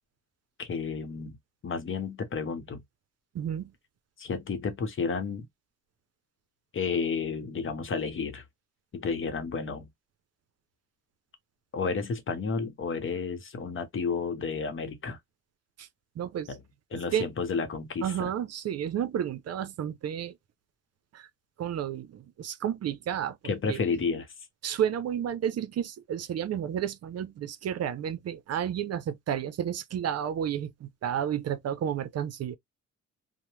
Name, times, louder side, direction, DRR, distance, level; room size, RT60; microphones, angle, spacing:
voice 1, 0.6-1.4 1.6-2.8 4.2-5.5 6.7-8.4 8.9-9.9 11.7-15.2 16.5-16.6 16.9-18.3 23.4-24.3, left 5 dB, 45° left, 0.9 m, -31 dB
voice 2, 3.3-3.7 15.8-15.9 16.2-16.5 17.1-17.3 18.0-20.4 21.1-21.3 21.6-23.4 23.7-23.8 24.6-32.5, right 9 dB, 55° right, 0.6 m, -31 dB
2.8 x 2.1 x 3.2 m
cardioid pair, 90°, 30 cm